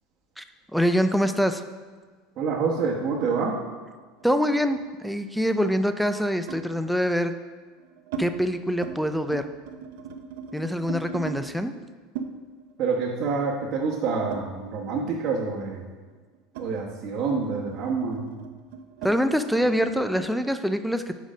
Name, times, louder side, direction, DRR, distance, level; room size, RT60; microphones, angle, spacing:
voice 1, 0.7-1.6 4.2-7.3 8.2-9.5 10.5-11.7 19.0-21.2, equal, ahead, 8 dB, 0.3 m, -24 dB
voice 2, 2.4-3.5 12.8-15.8 16.6-18.3, right 5 dB, 45° right, -6 dB, 1.1 m, -27 dB
sound 1, 3.6-5.2 6.5-6.7 7.5-8.3 8.6-9.0 9.2-11.4 12.1-15.0 15.3-20.3, right 6 dB, 75° right, 0.7 m, -39 dB
6.4 x 4.9 x 5.1 m, 1.5 s
supercardioid pair, 150°, 0 cm